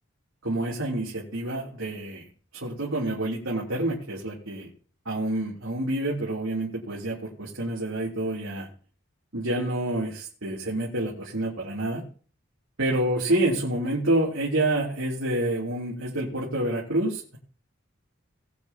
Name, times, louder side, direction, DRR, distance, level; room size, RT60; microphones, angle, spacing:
voice 1, 0.4-2.2 2.5-4.7 5.0-8.7 9.3-12.0 12.8-17.4, right 1 dB, 75° right, -6 dB, 3.2 m, -28 dB
20.0 x 8.2 x 2.9 m, 0.41 s
head